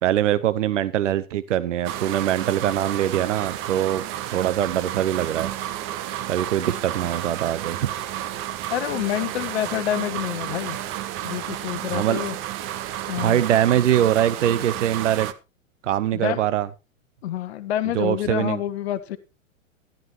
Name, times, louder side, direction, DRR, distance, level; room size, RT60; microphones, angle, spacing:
voice 1, 0.0-4.0 4.3-5.5 6.3-7.8 11.9-12.3 13.2-15.3 15.8-16.7 17.9-18.6, right 11 dB, 65° right, 16 dB, 0.7 m, -22 dB
sound 1, 1.8-15.3, right 12 dB, 30° right, 1.0 m, -31 dB
voice 2, 8.7-10.8 11.2-12.3 13.1-13.4 16.1-16.4 17.2-19.2, left 12 dB, 55° left, 13 dB, 1.0 m, -27 dB
14.0 x 11.5 x 3.1 m, 0.27 s
figure-of-eight pair, 105°, 39 cm